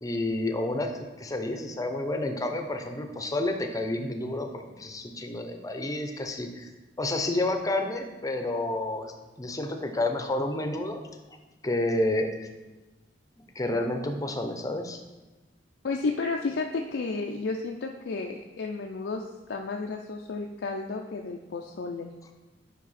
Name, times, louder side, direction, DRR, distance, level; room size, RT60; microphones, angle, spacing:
voice 1, 0.0-6.7 7.0-11.0 11.6-12.3 13.4-15.0, left 2 dB, 20° left, 5 dB, 0.6 m, -30 dB
voice 2, 15.8-19.2 19.5-22.1, left 3 dB, 80° left, 2 dB, 0.5 m, -32 dB
7.4 x 5.3 x 4.1 m, 1.1 s
head